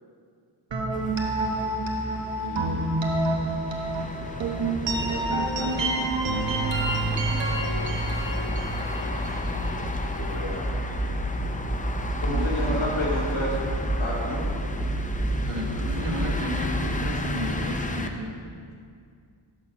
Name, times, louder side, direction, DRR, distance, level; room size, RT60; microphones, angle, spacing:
sound 1, 0.7-10.5, right 2 dB, 65° right, 1.0 m, -28 dB
sound 2, 0.9-18.1, left 2 dB, 15° left, 0.4 m, -34 dB
voice 1, 2.4-3.1 6.4-6.7 12.2-13.0 15.5-18.4, right 1 dB, 80° right, -3 dB, 1.5 m, -34 dB
sound 3, 2.7-18.0, right 1 dB, 40° right, 1.3 m, -32 dB
voice 2, 5.1-6.1 10.0-10.7 12.2-13.6 14.0-14.5, equal, 70° left, -4 dB, 1.9 m, -31 dB
6.1 x 5.6 x 6.0 m, 2.2 s
wide cardioid pair, 75°, 49 cm